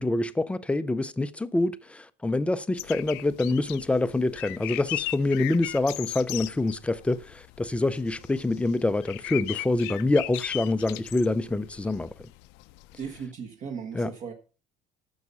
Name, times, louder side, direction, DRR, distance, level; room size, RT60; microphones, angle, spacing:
voice 1, 0.0-12.1 13.9-14.1, left 2 dB, 5° left, 0.5 m, -26 dB
sound 1, 2.8-13.2, left 20 dB, 80° left, 0.6 m, -38 dB
voice 2, 13.0-14.3, right 6 dB, 45° right, 1.3 m, -37 dB
11.0 x 7.0 x 5.4 m
cardioid pair, 155°, 18 cm